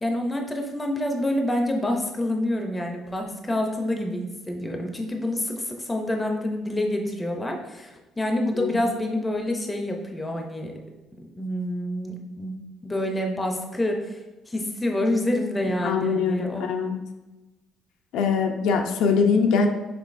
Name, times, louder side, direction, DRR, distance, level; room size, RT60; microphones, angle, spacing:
voice 1, 0.0-10.8 11.4-12.6 12.8-14.2 14.5-16.6, left 1 dB, 10° left, 2 dB, 0.5 m, -27 dB
voice 2, 15.8-17.0 18.1-19.7, left 5 dB, 75° left, 4 dB, 0.5 m, -22 dB
5.9 x 3.6 x 2.5 m, 1.1 s
cardioid pair, 175°, 0 cm